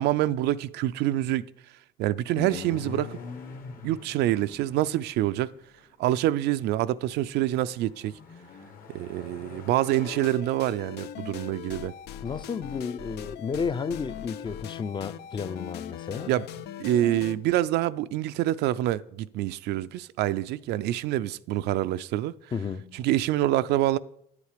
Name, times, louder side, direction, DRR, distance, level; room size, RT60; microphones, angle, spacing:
voice 1, 0.0-1.4 2.0-3.2 3.8-5.5 6.0-8.1 8.9-11.9 16.3-16.4 16.8-22.3 22.9-24.0, right 14 dB, 80° right, 0.4 m, -26 dB
sound 1, 2.3-5.9 7.0-10.3, left 5 dB, 55° left, 1.7 m, -43 dB
sound 2, 9.9-17.4, left 10 dB, 75° left, 0.6 m, -40 dB
voice 2, 12.2-16.3 22.5-23.0, left 5 dB, 30° left, 0.5 m, -32 dB
9.6 x 8.3 x 5.0 m
cardioid pair, 110°, 17 cm